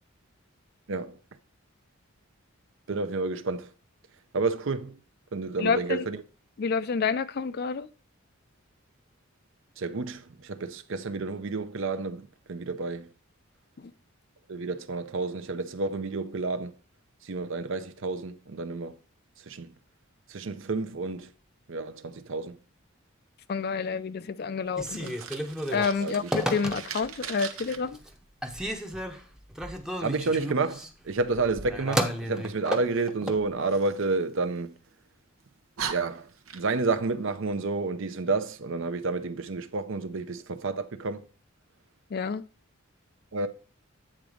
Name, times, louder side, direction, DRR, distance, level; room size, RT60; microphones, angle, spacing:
voice 1, 2.9-3.7 4.3-5.0 5.3-6.2 9.8-13.1 14.5-16.7 17.2-19.0 19.5-19.7 20.3-21.3 21.7-22.6 26.0-26.3 30.0-34.7 35.9-41.2 43.3-43.5, right 3 dB, 65° right, 0.6 m, -30 dB
voice 2, 5.6-6.1 6.6-7.9 13.8-13.9 23.5-25.2 25.7-28.0 42.1-42.4, left 5 dB, 50° left, 0.4 m, -29 dB
Telephone, 24.7-27.2 27.6-28.1 28.4-33.4, equal, 5° right, 0.7 m, -33 dB
Fire, 24.8-27.8 33.7-34.9 35.4-35.5 35.8-37.0, right 7 dB, 90° right, 0.9 m, -40 dB
8.7 x 3.9 x 4.9 m
head